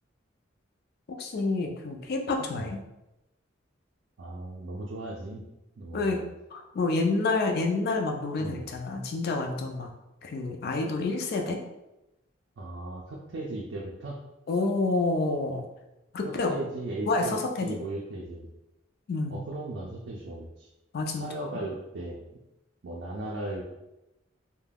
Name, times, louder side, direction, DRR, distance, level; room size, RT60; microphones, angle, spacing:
voice 1, 1.1-2.8 5.9-6.2 6.5-9.9 10.2-11.6 14.5-15.6 16.1-16.6 17.1-17.8 19.1-19.4 20.9-21.5, left 3 dB, 55° left, 3 dB, 0.4 m, -28 dB
voice 2, 4.2-5.4 5.8-6.3 8.4-8.7 12.6-14.2 16.2-18.5 19.3-20.7 21.2-22.2 22.8-23.6, right 2 dB, 70° right, -3 dB, 0.4 m, -37 dB
2.3 x 2.2 x 3.3 m, 0.95 s
head